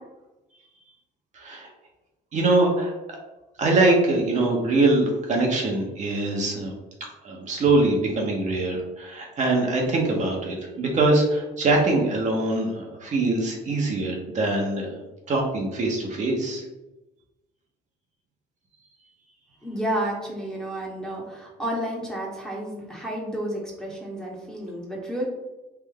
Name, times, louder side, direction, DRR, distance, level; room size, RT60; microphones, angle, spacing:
voice 1, 1.3-1.7 2.3-2.9 3.6-6.7 7.2-15.0 15.3-16.6, right 2 dB, 45° right, -1 dB, 0.9 m, -23 dB
voice 2, 19.6-25.3, right 1 dB, 5° left, -3 dB, 1.0 m, -31 dB
3.3 x 2.5 x 3.7 m, 1.0 s
cardioid pair, 110°, 17 cm